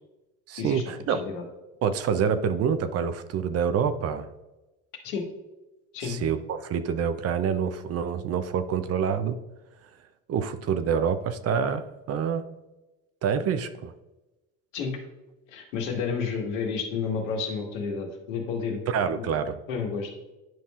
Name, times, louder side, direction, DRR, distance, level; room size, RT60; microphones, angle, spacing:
voice 1, 0.5-1.2 1.8-4.3 6.0-9.4 10.3-12.4 13.2-13.9 18.9-19.5, right 7 dB, 40° right, 11 dB, 0.6 m, -27 dB
voice 2, 1.1-1.4 5.0-5.2 5.9-6.2 14.7-15.0 15.5-18.8 19.1-19.4 19.7-20.1, left 5 dB, 80° left, 1 dB, 1.7 m, -31 dB
10.5 x 5.4 x 2.4 m, 1.1 s
supercardioid pair, 90°, 38 cm